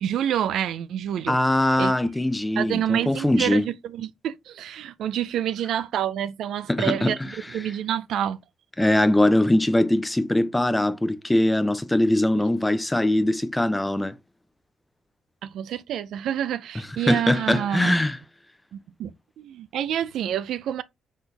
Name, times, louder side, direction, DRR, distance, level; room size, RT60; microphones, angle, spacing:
voice 1, 0.0-1.4 1.8-1.9 2.6-7.2 7.5-8.4 12.4-12.5 15.4-18.1 18.7-20.8, right 10 dB, 75° right, 0.3 m, -28 dB
voice 2, 1.3-3.6 6.7-7.1 8.8-14.1 17.1-18.2, left 1 dB, 10° left, 0.6 m, -21 dB
4.1 x 4.0 x 3.3 m
cardioid pair, 90°, 0 cm